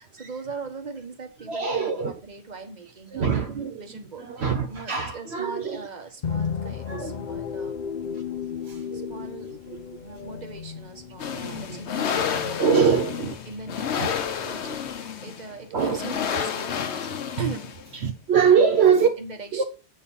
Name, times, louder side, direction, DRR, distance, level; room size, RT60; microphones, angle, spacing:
voice 1, 0.0-3.4 3.8-7.9 8.8-9.5 10.0-12.8 13.4-14.0 14.4-17.7 18.5-19.6, right 4 dB, 40° right, 1.4 m, -40 dB
voice 2, 1.5-2.1 3.1-3.8 4.3-5.8 6.9-7.2 8.1-8.2 8.6-9.3 10.2-10.3 11.4-11.8 12.3-13.4 14.0-14.1 14.7-14.8 15.7-16.0 17.2-17.3 17.9-19.1 19.5-19.6, right 6 dB, 70° right, 1.1 m, -23 dB
sound 1, 6.2-15.0, left 7 dB, 50° left, 0.7 m, -35 dB
sound 2, 11.2-18.0, left 7 dB, 75° left, 1.1 m, -30 dB
8.7 x 4.3 x 5.5 m
omnidirectional pair, 1.2 m